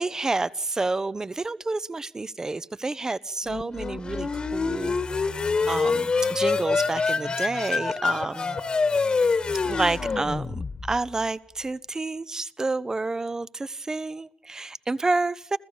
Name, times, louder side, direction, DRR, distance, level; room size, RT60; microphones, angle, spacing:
voice 1, 0.0-5.0 5.7-8.6 9.6-10.6 10.9-15.6, right 3 dB, 25° right, 18 dB, 0.8 m, -29 dB
sound 1, 3.5-11.1, left 4 dB, 40° left, 1.7 m, -26 dB
29.5 x 14.5 x 7.1 m, 0.62 s
cardioid pair, 70°, 3 cm